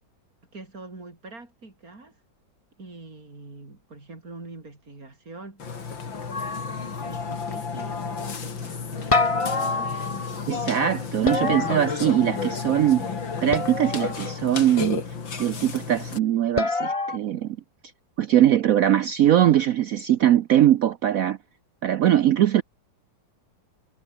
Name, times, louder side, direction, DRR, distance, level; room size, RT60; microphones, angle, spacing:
voice 1, 0.5-2.2 2.8-5.6 7.0-10.0, right 3 dB, 45° right, 5.2 m, -44 dB
Burping eructation, 5.6-16.2, left 5 dB, 85° left, 3.5 m, -32 dB
sound 1, 6.3-7.2 9.1-10.5 11.3-12.5 13.5-14.4 16.6-17.2, left 3 dB, 20° left, 1.2 m, -27 dB
voice 2, 10.5-13.1 13.4-15.0 15.4-17.6 18.2-21.4 21.8-22.6, right 11 dB, 70° right, 0.8 m, -21 dB
omnidirectional pair, 2.0 m